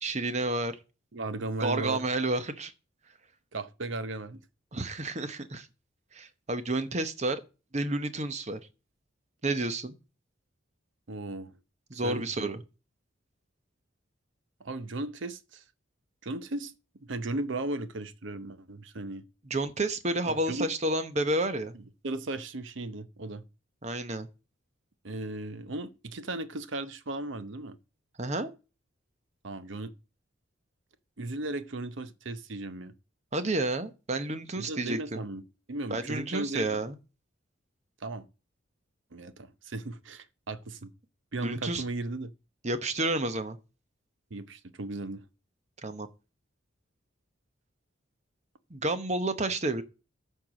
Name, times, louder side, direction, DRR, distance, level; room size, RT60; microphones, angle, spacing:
voice 1, 0.0-0.8 1.6-2.7 4.7-5.7 6.1-7.4 7.7-8.6 9.4-9.9 11.9-12.6 19.5-21.7 23.8-24.3 28.2-28.5 33.3-35.2 35.9-36.9 41.4-41.8 42.6-43.6 45.8-46.1 48.7-49.8, right 2 dB, 35° right, 0.9 m, -30 dB
voice 2, 1.1-2.0 3.5-4.5 11.1-11.5 11.9-12.5 14.6-15.6 16.2-16.7 17.0-19.3 20.3-20.7 21.7-23.4 25.0-27.8 29.4-29.9 31.2-32.9 34.6-35.4 35.7-36.8 38.0-38.3 39.1-40.9 41.3-42.3 44.3-45.2, right 2 dB, 70° right, 0.8 m, -36 dB
13.5 x 4.6 x 6.3 m
head